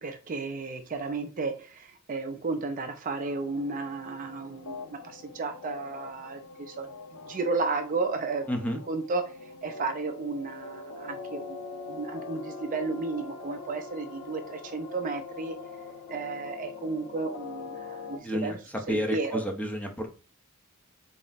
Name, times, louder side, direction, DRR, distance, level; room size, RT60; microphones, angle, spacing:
voice 1, 0.0-6.9 7.2-8.5 8.9-9.2 9.6-11.6 11.9-15.6 16.1-18.6 18.9-19.4, right 3 dB, 40° right, 6 dB, 0.4 m, -33 dB
sound 1, 3.3-18.2, left 4 dB, 80° left, 0.5 m, -43 dB
voice 2, 8.5-8.8 18.2-18.5 18.9-20.1, equal, 5° left, 2 dB, 0.6 m, -30 dB
4.3 x 2.0 x 3.9 m, 0.34 s
head